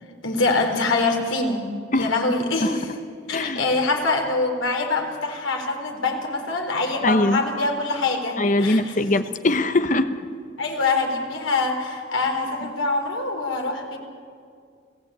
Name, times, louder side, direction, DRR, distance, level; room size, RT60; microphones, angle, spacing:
voice 1, 0.2-1.7 1.9-2.9 3.3-8.9 10.6-14.0, left 3 dB, 90° left, 3 dB, 4.1 m, -24 dB
voice 2, 7.0-7.4 8.4-10.2, left 2 dB, 40° left, 10 dB, 1.0 m, -21 dB
30.0 x 17.0 x 8.7 m, 2.2 s
head